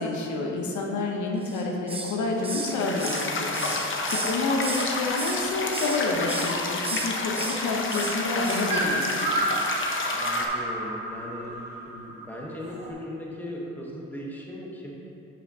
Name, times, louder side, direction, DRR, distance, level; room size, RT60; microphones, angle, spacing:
voice 1, 0.0-3.5 4.1-9.3, left 3 dB, 75° left, 0 dB, 1.0 m, -29 dB
Hiss, 1.4-2.2 2.4-4.9 5.2-6.0 6.3-6.5 6.8-7.6 7.9-8.2 8.4-8.7 9.0-9.2 9.5-9.7, right 3 dB, 20° right, 0.8 m, -34 dB
sound 1, 2.4-10.5, left 3 dB, 40° left, 0.8 m, -30 dB
voice 2, 3.4-3.8 10.0-11.6 11.9-14.9, left 1 dB, 5° left, -3 dB, 1.3 m, -38 dB
sound 2, 7.9-12.9, right 2 dB, 35° right, 1.5 m, -31 dB
11.0 x 5.4 x 2.8 m, 2.9 s
cardioid pair, 90°, 30 cm